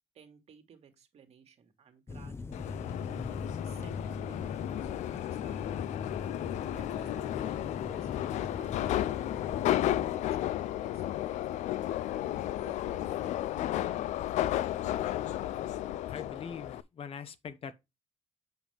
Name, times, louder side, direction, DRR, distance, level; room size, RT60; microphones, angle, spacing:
voice 1, 0.1-5.9 6.8-9.2 9.8-11.6 12.6-13.6, right 7 dB, 65° right, 2.0 m, -57 dB
sound 1, 2.1-10.2, left 4 dB, 20° left, 0.6 m, -42 dB
Subway metro underground, 2.5-16.8, left 13 dB, 85° left, 0.4 m, -33 dB
voice 2, 16.1-17.7, left 7 dB, 55° left, 1.0 m, -42 dB
7.8 x 5.3 x 3.4 m
cardioid pair, 100°, 12 cm